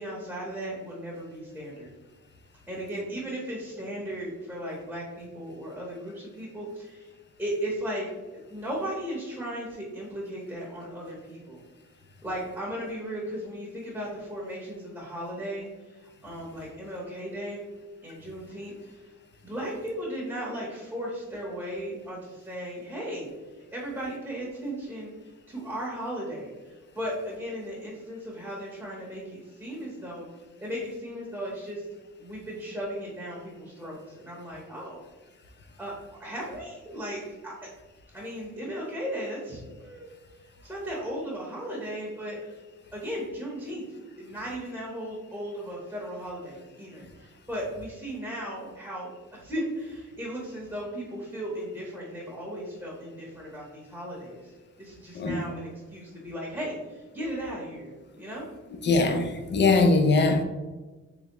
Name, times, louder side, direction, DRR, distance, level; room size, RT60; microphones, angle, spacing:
voice 1, 0.0-1.9 2.7-7.1 7.4-8.1 8.5-11.6 12.2-17.6 18.0-19.1 19.4-23.3 23.7-25.1 25.5-26.5 26.9-30.3 30.6-31.8 32.2-35.0 35.8-35.9 36.2-37.5 38.1-40.1 40.6-42.5 42.9-43.8 44.2-54.5 54.8-58.4, equal, 5° right, -5 dB, 0.8 m, -36 dB
voice 2, 58.8-60.4, left 3 dB, 35° left, 6 dB, 0.4 m, -21 dB
3.4 x 3.4 x 2.9 m, 1.2 s
wide cardioid pair, 165°, 31 cm